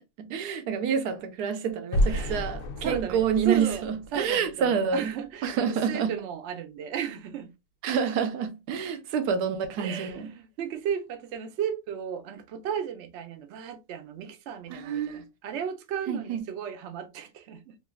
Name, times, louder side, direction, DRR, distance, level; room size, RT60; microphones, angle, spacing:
voice 1, 0.2-5.1 5.4-6.1 7.8-10.3 14.7-15.2 16.1-16.4, right 7 dB, 90° right, 1.1 m, -28 dB
sound 1, 1.9-4.9, left 1 dB, 65° left, 0.9 m, -30 dB
voice 2, 2.1-2.5 2.8-3.8 4.1-7.5 9.8-17.8, right 8 dB, 65° right, 0.7 m, -34 dB
3.2 x 2.6 x 2.2 m
omnidirectional pair, 1.6 m